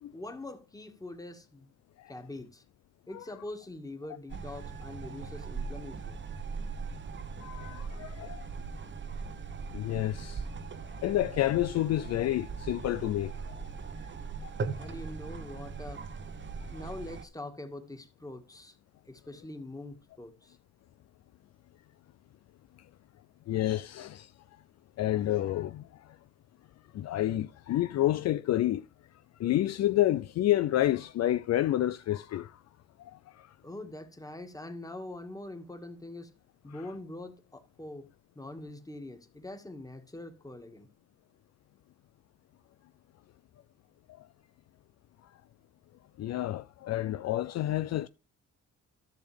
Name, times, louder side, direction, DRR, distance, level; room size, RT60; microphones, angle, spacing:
voice 1, 0.1-1.7 2.1-2.6 3.1-6.2 14.8-16.0 16.7-18.8 19.1-20.6 33.6-36.3 36.6-38.1 38.4-40.9, left 2 dB, 10° left, 1.9 m, -43 dB
sound 1, 4.3-17.3, right 5 dB, 40° right, 1.1 m, -40 dB
voice 2, 7.4-8.5 9.7-10.5 11.0-13.7 14.4-14.5 23.5-24.3 25.0-26.2 26.9-28.9 29.4-32.6 33.0-33.5 44.2-44.3 46.2-48.1, left 13 dB, 60° left, 0.5 m, -29 dB
13.5 x 6.4 x 3.4 m
cardioid pair, 90°, 30 cm